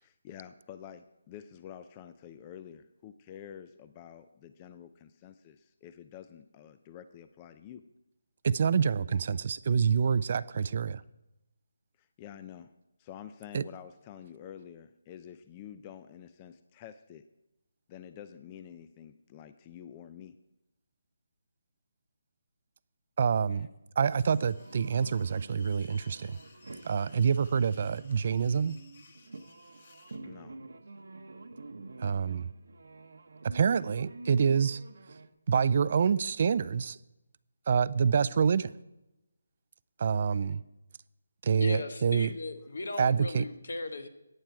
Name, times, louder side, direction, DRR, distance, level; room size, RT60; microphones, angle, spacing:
voice 1, 0.0-7.8 12.0-12.7 13.0-17.2 17.9-20.4 23.5-23.7 30.2-30.6 40.4-40.5, left 9 dB, 20° left, 11 dB, 0.4 m, -48 dB
voice 2, 8.4-11.0 13.5-13.6 23.2-23.7 24.0-26.4 26.8-28.7 32.0-32.5 33.4-34.8 35.5-37.0 37.7-38.7 40.0-40.6 41.4-42.3 43.0-43.4, right 6 dB, 45° right, 18 dB, 0.4 m, -27 dB
sound 1, 24.1-30.2, left 4 dB, 45° left, 1.3 m, -59 dB
sound 2, 24.3-35.3, right 3 dB, 70° right, 1.0 m, -48 dB
voice 3, 41.6-44.1, left 2 dB, 70° left, 8 dB, 1.4 m, -37 dB
14.5 x 9.0 x 4.7 m, 0.94 s
figure-of-eight pair, 160°, 0 cm